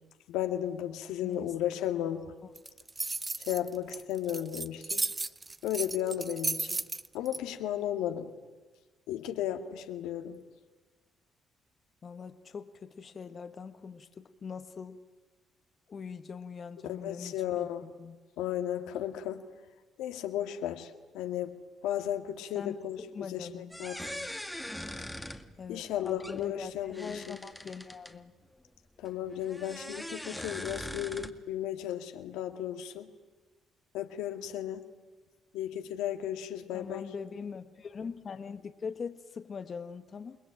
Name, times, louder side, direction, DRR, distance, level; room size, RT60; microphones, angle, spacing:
voice 1, 0.3-2.2 3.4-5.0 5.6-6.8 7.1-8.3 9.1-10.4 16.8-17.8 18.4-19.4 20.0-21.5 21.8-24.3 25.7-27.4 29.0-33.1 33.9-34.8 35.5-37.0, left 11 dB, 85° left, 6 dB, 2.1 m, -34 dB
voice 2, 1.2-1.9 2.4-2.5 12.0-15.0 15.9-17.7 18.0-18.2 22.5-23.8 25.6-28.3 36.7-40.4, left 6 dB, 45° left, 9 dB, 1.4 m, -42 dB
sound 1, 2.6-7.4, right 3 dB, 25° right, 1.0 m, -34 dB
sound 2, 23.7-28.1 29.0-31.3, left 1 dB, 5° left, 2.1 m, -42 dB
28.5 x 20.5 x 9.0 m, 1.3 s
supercardioid pair, 65°, 0 cm